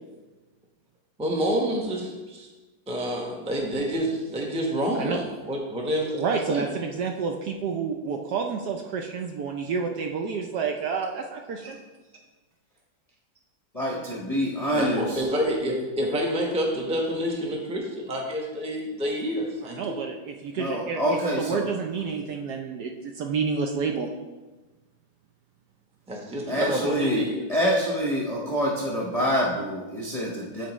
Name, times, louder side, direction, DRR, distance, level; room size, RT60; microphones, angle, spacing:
voice 1, 1.2-2.5 2.9-6.6 11.6-11.7 14.7-19.8 26.1-27.4, equal, 5° right, -1 dB, 0.6 m, -28 dB
voice 2, 6.2-11.8 19.6-24.1, right 5 dB, 70° right, 3 dB, 1.0 m, -29 dB
voice 3, 13.7-15.2 20.6-21.7 26.5-30.7, equal, 30° left, -4 dB, 0.7 m, -26 dB
11.5 x 4.4 x 3.0 m, 1.2 s
omnidirectional pair, 2.1 m